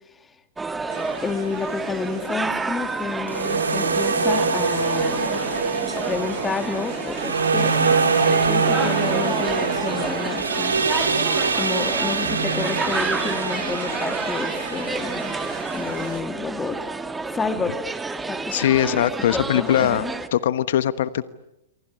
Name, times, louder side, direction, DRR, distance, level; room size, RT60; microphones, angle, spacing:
sound 1, 0.6-20.3, right 3 dB, 10° right, 1.9 m, -30 dB
sound 2, 0.9-2.3 3.3-16.2, right 4 dB, 90° right, 4.1 m, -24 dB
voice 1, 1.2-5.4 6.1-7.7 8.4-10.7 11.5-15.4 15.7-16.8 17.3-17.7 18.3-18.6 19.3-20.1, left 4 dB, 15° left, 7 dB, 2.9 m, -30 dB
voice 2, 18.5-20.0 20.3-21.3, left 11 dB, 65° left, 14 dB, 1.2 m, -21 dB
28.0 x 24.0 x 8.8 m, 0.89 s
hypercardioid pair, 110°, 0 cm